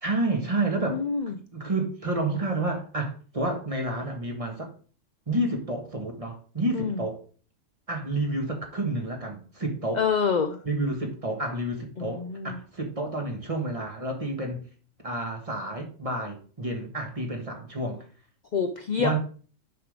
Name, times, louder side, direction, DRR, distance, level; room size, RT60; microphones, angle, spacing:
voice 1, 0.0-4.7 5.3-7.2 7.9-10.0 10.6-14.6 15.0-18.0 19.0-19.2, right 2 dB, 30° right, 1.4 m, -30 dB
voice 2, 0.9-1.4 6.7-7.0 9.9-10.6 12.0-12.6 18.5-19.1, left 6 dB, 45° left, 0.6 m, -27 dB
6.8 x 5.5 x 5.0 m
omnidirectional pair, 1.3 m